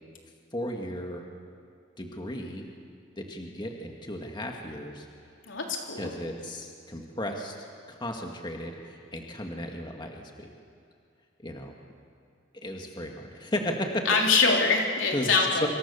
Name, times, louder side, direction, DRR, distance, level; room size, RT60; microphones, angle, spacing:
voice 1, 0.5-1.2 2.0-2.7 3.2-5.1 6.0-7.6 7.9-10.5 11.4-11.7 12.5-13.9 15.1-15.7, left 1 dB, 25° left, 2 dB, 2.0 m, -35 dB
voice 2, 5.5-6.1 14.1-15.7, left 4 dB, 80° left, 0 dB, 3.6 m, -24 dB
27.0 x 25.5 x 7.0 m, 2.3 s
head